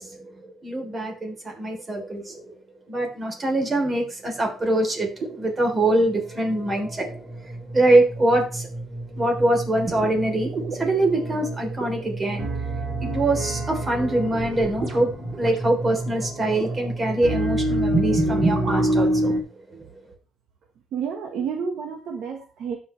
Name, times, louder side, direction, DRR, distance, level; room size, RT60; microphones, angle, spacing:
voice 1, 0.0-2.6 2.9-7.1 7.4-8.7 9.2-12.6 13.0-19.8, right 1 dB, 30° right, 3.6 m, -24 dB
sound 1, 2.3-2.5 5.2-19.4, right 1 dB, 60° right, 3.5 m, -28 dB
voice 2, 20.9-22.8, right 6 dB, 80° right, 1.5 m, -30 dB
16.5 x 5.7 x 3.3 m
cardioid pair, 90°, 0 cm